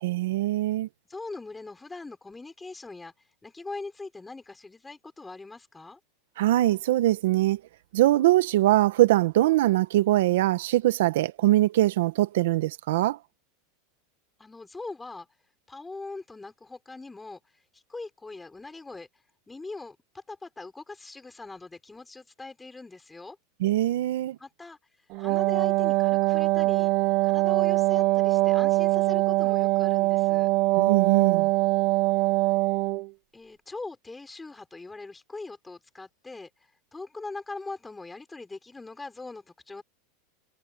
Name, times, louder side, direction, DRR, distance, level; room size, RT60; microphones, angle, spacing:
voice 1, 0.0-0.9 6.4-7.6 7.9-13.2 23.6-24.4 30.8-31.5, right 15 dB, 75° right, 1.3 m, -22 dB
voice 2, 1.1-3.1 3.4-6.0 14.4-15.3 15.7-17.4 17.7-19.1 19.5-23.4 24.4-24.8 25.2-26.9 27.2-30.5 33.3-39.8, left 3 dB, 10° left, 6.5 m, -41 dB
Wind instrument woodwind instrument, 25.1-33.1, right 20 dB, 55° right, 1.1 m, -23 dB
supercardioid pair, 120°, 0 cm